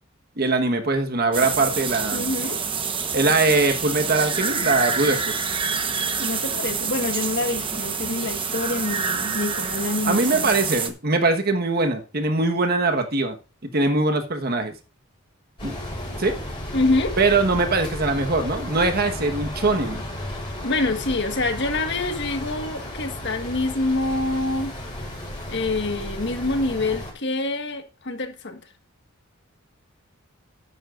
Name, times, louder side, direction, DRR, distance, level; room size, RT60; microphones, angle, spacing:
voice 1, 0.4-2.3 3.1-5.3 10.0-13.3 13.7-14.7 15.6-15.7 16.2-16.4 17.2-20.0, right 3 dB, 45° right, 1.3 m, -22 dB
sound 1, 1.3-10.9, right 5 dB, 25° right, 1.1 m, -27 dB
voice 2, 2.1-2.6 6.2-10.5 16.7-17.1 20.6-24.7 25.5-28.6, left 2 dB, 55° left, 1.6 m, -26 dB
sound 2, 15.6-27.1, left 1 dB, 25° left, 5.2 m, -33 dB
12.5 x 10.0 x 2.5 m
head